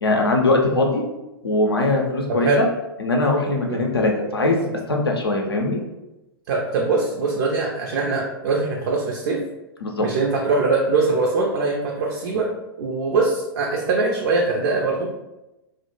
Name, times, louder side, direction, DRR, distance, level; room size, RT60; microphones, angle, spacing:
voice 1, 0.0-1.0 1.4-2.5 3.0-5.8 9.8-10.1, left 2 dB, 80° left, 1 dB, 0.5 m, -21 dB
voice 2, 2.3-2.6 3.7-3.8 6.5-9.4 10.0-12.5 12.8-15.2, right 3 dB, 50° right, -1 dB, 0.4 m, -22 dB
2.1 x 2.0 x 3.0 m, 0.97 s
figure-of-eight pair, 100°, 13 cm